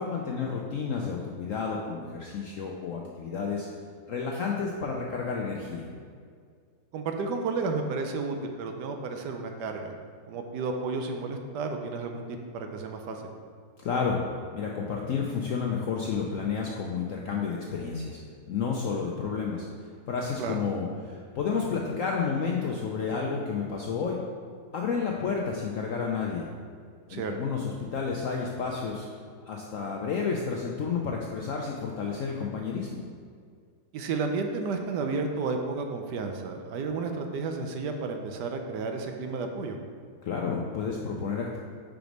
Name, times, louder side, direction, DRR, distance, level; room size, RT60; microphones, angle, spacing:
voice 1, 0.0-3.7 4.1-5.9 13.8-14.2 14.5-18.2 18.5-19.7 20.1-24.2 24.7-26.5 27.1-29.1 29.5-33.0 40.2-41.6, left 5 dB, 75° left, -1 dB, 0.7 m, -31 dB
voice 2, 6.9-9.9 10.3-13.2 20.4-20.6 27.1-27.3 33.9-39.8, right 4 dB, 75° right, 4 dB, 1.2 m, -32 dB
5.0 x 4.6 x 5.1 m, 2.1 s
omnidirectional pair, 1.9 m